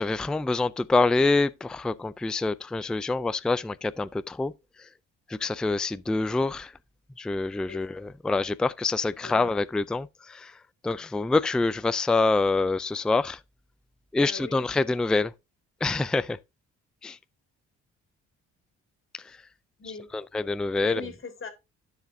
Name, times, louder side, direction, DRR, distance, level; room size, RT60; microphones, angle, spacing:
voice 1, 0.0-4.5 5.3-6.7 7.2-10.5 10.8-13.4 14.1-15.3 15.8-16.4 17.0-17.2 19.2-19.4 20.1-21.0, left 3 dB, 5° left, 0.3 m, -26 dB
voice 2, 14.2-14.7 19.8-20.1 20.7-21.5, left 5 dB, 40° left, 2.2 m, -39 dB
13.0 x 5.0 x 2.6 m
cardioid pair, 90°, 30 cm